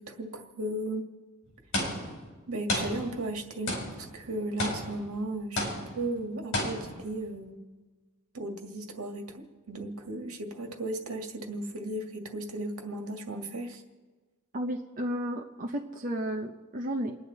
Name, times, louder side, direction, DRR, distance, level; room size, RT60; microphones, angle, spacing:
voice 1, 0.1-1.1 2.5-3.8 4.1-5.6 5.9-7.6 8.3-13.8, right 1 dB, 75° right, 3 dB, 2.0 m, -35 dB
sound 1, 1.7-2.3 2.7-3.4 3.7-4.2 4.6-5.2 5.6-6.1 6.5-7.1, left 1 dB, 65° left, 4.2 m, -32 dB
voice 2, 14.5-17.2, equal, 40° right, 1 dB, 0.9 m, -33 dB
29.5 x 10.0 x 4.1 m, 1.3 s
head